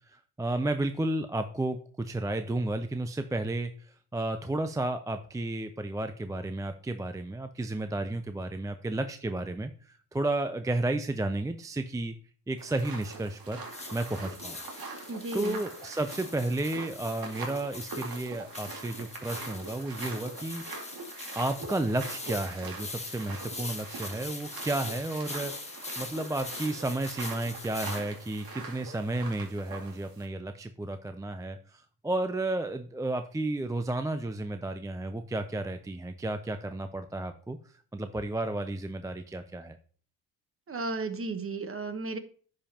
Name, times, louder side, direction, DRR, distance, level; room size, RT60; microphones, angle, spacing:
voice 1, 0.1-3.7 4.1-9.7 10.1-12.1 12.5-13.6 13.9-14.6 15.3-20.6 21.3-25.5 26.0-37.6 37.9-39.8, right 2 dB, 10° right, 8 dB, 0.5 m, -32 dB
sound 1, 12.6-30.3, right 3 dB, 55° right, 2.3 m, -43 dB
sound 2, 13.6-28.5, left 3 dB, 15° left, 1.6 m, -43 dB
voice 2, 15.1-15.6 40.7-42.2, right 3 dB, 30° right, 9 dB, 1.2 m, -34 dB
10.0 x 5.3 x 2.9 m, 0.43 s
cardioid pair, 85°, 41 cm